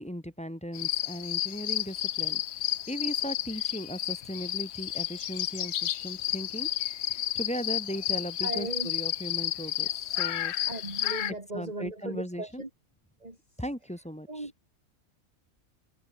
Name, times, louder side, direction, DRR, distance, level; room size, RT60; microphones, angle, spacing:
voice 1, 0.0-6.7 7.1-9.9 10.2-10.5 11.5-12.6 13.6-14.5, equal, 5° left, 0.8 m, -37 dB
sound 1, 0.7-11.3, left 12 dB, 60° left, 0.8 m, -31 dB
voice 2, 8.4-8.9 10.7-12.7 13.2-13.4 14.3-14.5, right 2 dB, 25° right, 3.6 m, -37 dB
omnidirectional pair, 1.5 m